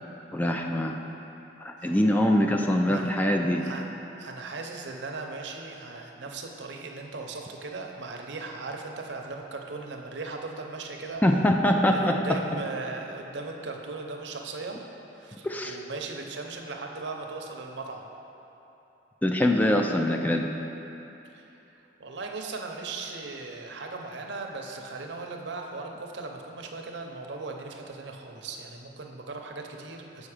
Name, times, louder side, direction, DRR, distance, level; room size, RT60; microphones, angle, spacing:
voice 1, 0.3-1.0 1.6-3.6 11.2-12.2 15.4-15.8 19.2-20.5, left 1 dB, 10° left, 2 dB, 0.3 m, -23 dB
voice 2, 4.2-11.2 11.9-14.8 15.2-18.1 21.3-21.5 22.0-30.3, right 3 dB, 70° right, 2 dB, 0.7 m, -38 dB
7.2 x 5.2 x 4.9 m, 3.0 s
head